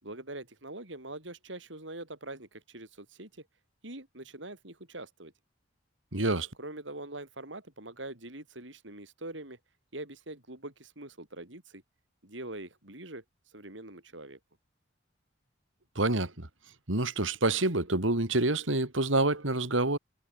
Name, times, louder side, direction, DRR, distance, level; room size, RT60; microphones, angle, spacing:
voice 1, 0.0-3.5 3.8-5.3 6.6-9.6 9.9-11.8 12.2-14.4, right 2 dB, 70° right, 6.3 m, -43 dB
voice 2, 6.1-6.5 15.9-16.5 16.9-20.0, right 2 dB, 90° right, 3.4 m, -27 dB
head